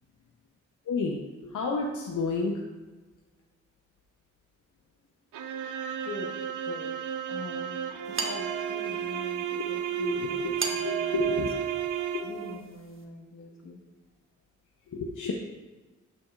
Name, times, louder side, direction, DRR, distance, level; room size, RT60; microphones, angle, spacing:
voice 1, 0.9-2.6 10.0-10.5 10.8-11.7 14.9-15.3, left 3 dB, 85° left, 0 dB, 0.8 m, -30 dB
sound 1, 5.3-12.6, right 9 dB, 80° right, 0.6 m, -33 dB
voice 2, 6.0-6.4 6.6-6.9 7.3-7.8 8.1-11.3 12.2-13.8, left 3 dB, 60° left, 0 dB, 1.6 m, -43 dB
sound 2, 8.2-9.3 10.6-12.5, right 5 dB, 40° right, 1.1 m, -35 dB
12.0 x 6.0 x 2.5 m, 1.2 s
cardioid pair, 55°, 30 cm